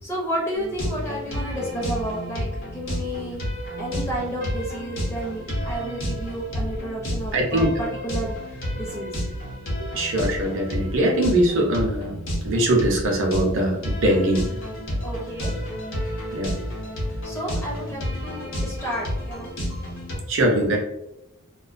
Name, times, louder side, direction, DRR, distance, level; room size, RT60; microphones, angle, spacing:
voice 1, 0.0-3.4 3.8-9.1 15.0-15.5 17.2-19.5, right 1 dB, 10° left, -4 dB, 0.6 m, -31 dB
sound 1, 0.5-20.1, equal, 60° left, 0.8 m, -30 dB
voice 2, 7.3-7.7 9.8-12.2 12.4-14.4 16.3-16.5 20.3-20.8, right 1 dB, 60° right, 0 dB, 0.5 m, -21 dB
2.2 x 2.2 x 2.4 m, 0.83 s
head